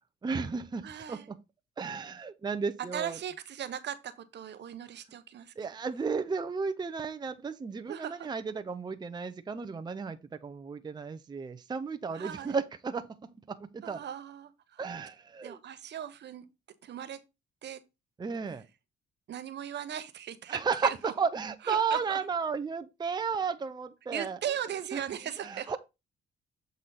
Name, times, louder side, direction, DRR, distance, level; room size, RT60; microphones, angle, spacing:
voice 1, 0.2-1.4 1.8-3.2 5.6-14.0 14.8-15.6 18.2-18.7 20.5-24.4 24.9-25.0 25.4-25.8, right 5 dB, 20° right, 0.5 m, -33 dB
voice 2, 0.8-1.3 2.9-5.5 7.9-8.3 12.1-12.6 13.8-14.8 15.4-16.4 16.8-17.2 17.6-17.8 19.3-21.1 21.6-22.2 24.1-25.8, right 9 dB, 60° right, 0.9 m, -38 dB
7.7 x 4.1 x 3.9 m
cardioid pair, 90°, 20 cm